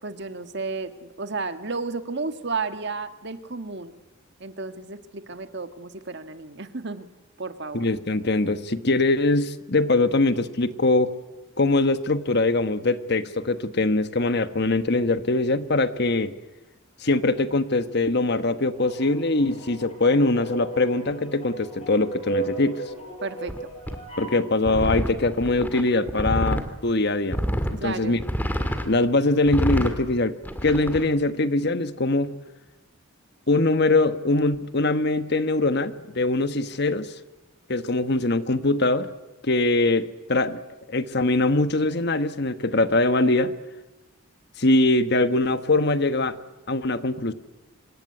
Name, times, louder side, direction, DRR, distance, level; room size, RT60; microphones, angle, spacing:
voice 1, 0.0-3.9 4.4-7.1 7.4-7.8 23.2-23.6 27.8-28.2, right 4 dB, 55° right, 9 dB, 1.7 m, -32 dB
voice 2, 7.7-11.1 11.6-16.3 17.0-22.8 24.2-27.4 27.8-28.2 28.8-30.4 30.6-32.3 33.5-37.1 37.7-39.1 39.4-40.6 40.9-43.5 44.6-46.4 46.7-47.3, left 2 dB, 50° left, 12 dB, 1.3 m, -22 dB
sound 1, 18.7-24.4, right 2 dB, 30° left, 7.8 m, -35 dB
sound 2, 23.5-23.6 23.9-24.0 24.7-26.7 27.3-27.8 28.2-28.9 29.5-30.0 30.4-31.0, equal, 10° left, 2.1 m, -27 dB
26.5 x 22.5 x 9.7 m, 1.1 s
head